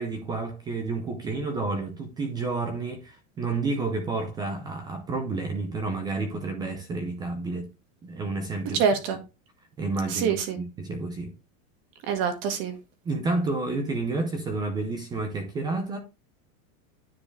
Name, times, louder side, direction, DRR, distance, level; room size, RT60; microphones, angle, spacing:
voice 1, 0.0-7.7 8.0-8.8 9.8-11.3 13.0-16.0, right 3 dB, 10° right, 0.5 m, -30 dB
voice 2, 8.8-9.2 10.1-10.6 12.1-12.7, right 6 dB, 40° right, 1.9 m, -25 dB
9.8 x 4.6 x 3.2 m
supercardioid pair, 175°, 41 cm